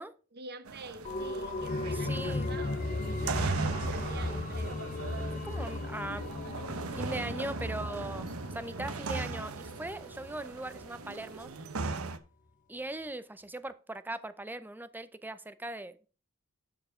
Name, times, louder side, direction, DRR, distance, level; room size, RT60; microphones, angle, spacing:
voice 1, 0.3-4.8, right 3 dB, 50° right, 1.1 m, -47 dB
sound 1, 0.7-12.2, right 3 dB, 85° right, 0.9 m, -38 dB
sound 2, 1.0-10.4 10.8-10.9, left 2 dB, 40° left, 0.6 m, -37 dB
voice 2, 1.9-2.5 5.4-6.2 6.9-8.3 8.5-11.5 12.7-16.1, right 2 dB, 10° right, 0.6 m, -39 dB
12.0 x 4.6 x 5.0 m
head